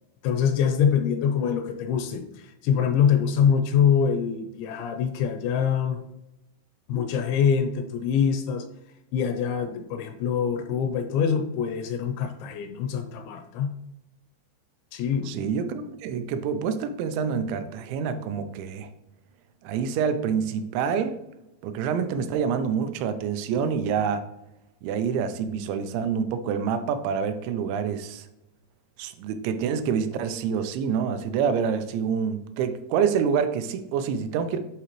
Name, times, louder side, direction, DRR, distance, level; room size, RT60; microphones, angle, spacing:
voice 1, 0.2-6.0 6.9-8.7 9.1-13.7 14.9-15.3, left 7 dB, 85° left, 7 dB, 2.8 m, -24 dB
voice 2, 15.3-18.9 19.6-21.2 21.6-24.2 24.8-28.3 29.0-34.6, right 7 dB, 85° right, 10 dB, 2.8 m, -27 dB
11.0 x 3.8 x 3.0 m, 0.89 s
omnidirectional pair, 5.4 m